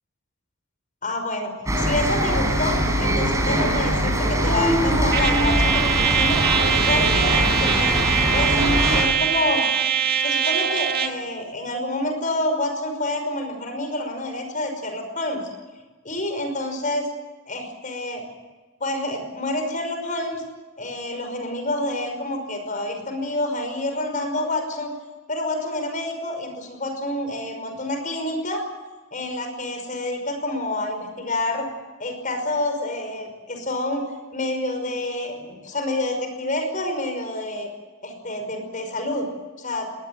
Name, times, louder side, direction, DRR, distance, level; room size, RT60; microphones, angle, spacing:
voice 1, 1.0-6.4 6.9-8.0 8.3-9.7 10.2-15.5 16.0-17.1 17.5-18.2 18.8-20.4 20.8-24.9 25.3-28.6 29.1-31.7 32.0-34.1 34.3-37.7 38.0-39.3 39.6-39.9, left 1 dB, 40° left, 6 dB, 5.5 m, -28 dB
sound 1, 1.7-9.0, right 1 dB, 15° right, 5.3 m, -22 dB
Trumpet, 5.1-11.2, right 7 dB, 50° right, 1.8 m, -22 dB
23.0 x 19.0 x 9.2 m, 1.3 s
head